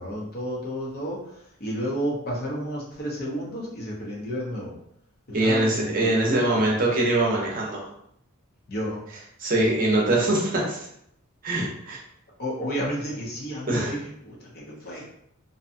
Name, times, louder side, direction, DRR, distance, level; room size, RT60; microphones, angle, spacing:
voice 1, 0.0-4.7 5.3-6.6 8.7-9.0 12.4-15.0, equal, 45° left, -4 dB, 0.7 m, -31 dB
voice 2, 5.3-7.9 9.4-10.9 11.4-12.0 13.7-13.9, right 2 dB, 40° right, -3 dB, 0.6 m, -23 dB
2.6 x 2.2 x 2.6 m, 0.72 s
head